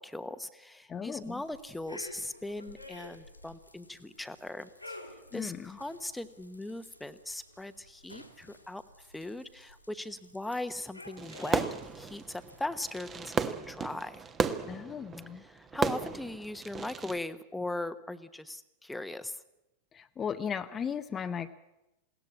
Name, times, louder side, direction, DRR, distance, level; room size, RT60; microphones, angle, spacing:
voice 1, 0.0-5.0 5.3-11.6 11.9-14.2 15.4-19.4, left 2 dB, 5° left, 11 dB, 1.0 m, -39 dB
voice 2, 0.9-1.4 5.3-5.8 14.7-15.4 19.9-21.5, left 7 dB, 20° left, 9 dB, 0.7 m, -36 dB
sound 1, 1.2-12.7, left 2 dB, 90° left, 2.3 m, -51 dB
Fireworks, 11.2-17.2, right 5 dB, 20° right, 1.2 m, -34 dB
21.5 x 17.5 x 8.5 m, 0.94 s
figure-of-eight pair, 90°, 0 cm